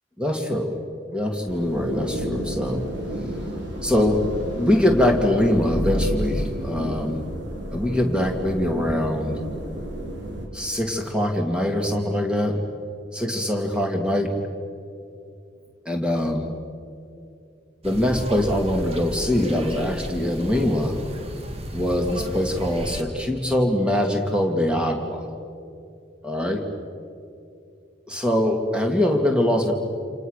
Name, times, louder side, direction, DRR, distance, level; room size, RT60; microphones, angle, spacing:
voice 1, 0.2-0.7 1.1-2.8 3.8-4.2 4.6-7.2 7.7-9.4 10.5-12.6 13.1-14.4 15.8-16.5 17.8-21.0 21.7-25.3 26.2-26.6 28.1-29.7, left 1 dB, 5° right, 2 dB, 2.5 m, -23 dB
sound 1, 1.5-10.5, equal, 70° right, 4.5 m, -30 dB
sound 2, 17.8-23.0, equal, 30° right, 1.8 m, -33 dB
29.0 x 28.5 x 6.7 m, 2.6 s
head